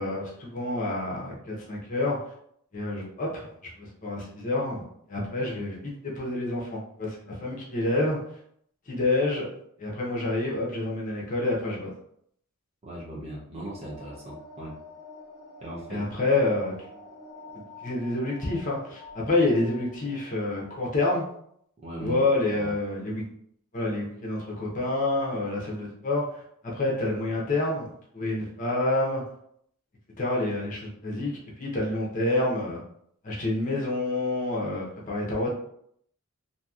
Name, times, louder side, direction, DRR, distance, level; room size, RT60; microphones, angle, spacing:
voice 1, 0.0-2.2 2.7-3.5 3.8-4.8 5.1-8.2 8.9-9.5 9.8-11.9 15.9-16.7 17.8-21.2 22.0-23.2 23.7-27.9 28.1-29.2 30.2-32.8 33.2-35.5, left 2 dB, 35° left, -3 dB, 0.7 m, -28 dB
voice 2, 12.8-14.8 15.6-16.1 21.8-22.2 22.6-22.7, equal, 30° right, -4 dB, 0.6 m, -38 dB
sound 1, 13.8-20.8, left 2 dB, ahead, 0.9 m, -47 dB
2.8 x 2.7 x 2.4 m, 0.69 s
head